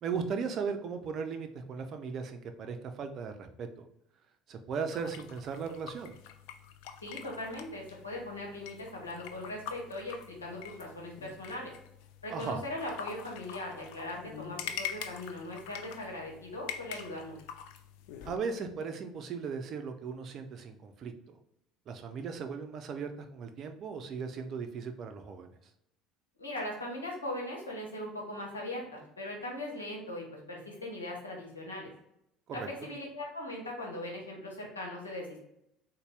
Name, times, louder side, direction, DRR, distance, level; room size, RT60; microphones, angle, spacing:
voice 1, 0.0-3.8 4.5-6.1 12.3-12.6 18.2-21.4 21.9-25.5 32.5-32.9, right 5 dB, 50° right, 7 dB, 0.5 m, -37 dB
sound 1, 4.9-18.4, left 9 dB, 65° left, 0.3 m, -45 dB
voice 2, 7.0-11.7 12.2-17.4 26.4-31.9 32.5-35.4, left 1 dB, 90° left, -1 dB, 1.0 m, -40 dB
4.0 x 2.2 x 3.3 m, 0.77 s
hypercardioid pair, 65°, 0 cm